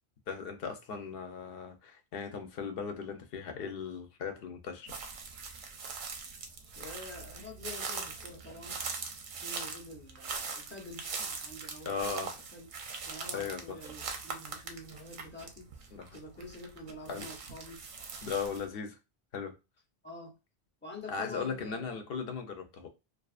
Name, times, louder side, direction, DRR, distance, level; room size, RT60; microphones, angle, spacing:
voice 1, 0.3-4.9 11.8-12.3 13.3-13.8 15.9-16.2 17.1-17.3 18.2-19.0 19.3-19.6 21.1-22.9, left 5 dB, 65° left, 0.8 m, -37 dB
sound 1, 4.9-18.7, right 5 dB, 60° right, 0.6 m, -42 dB
voice 2, 6.8-8.8 9.3-12.7 13.0-17.8 20.0-20.4 20.8-22.0, left 2 dB, 15° left, 0.5 m, -47 dB
2.4 x 2.4 x 2.4 m
omnidirectional pair, 1.1 m